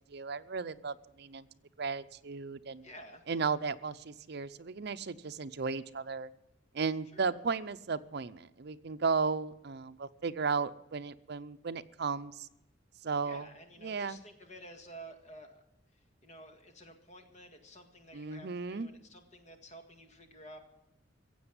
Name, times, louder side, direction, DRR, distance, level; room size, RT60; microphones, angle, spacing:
voice 1, 0.1-1.5 1.8-2.9 3.3-6.3 6.7-12.5 13.0-13.5 13.8-14.2 18.1-18.9, right 5 dB, 60° right, 11 dB, 0.6 m, -35 dB
voice 2, 2.8-3.2 7.1-7.4 13.2-15.6 16.2-20.6, right 1 dB, 40° left, 5 dB, 1.9 m, -51 dB
15.5 x 7.9 x 9.8 m, 0.85 s
head